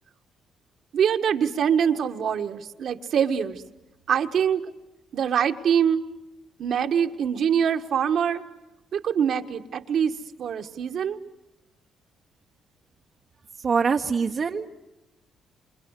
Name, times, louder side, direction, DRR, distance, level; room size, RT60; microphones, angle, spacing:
voice 1, 0.9-3.6 4.1-4.6 5.1-6.0 6.6-8.4 8.9-10.1 10.4-11.2, right 8 dB, 65° right, 6 dB, 1.5 m, -24 dB
voice 2, 13.6-14.7, right 5 dB, 45° right, 3 dB, 1.0 m, -24 dB
27.0 x 27.0 x 8.2 m, 0.98 s
cardioid pair, 90°, 0 cm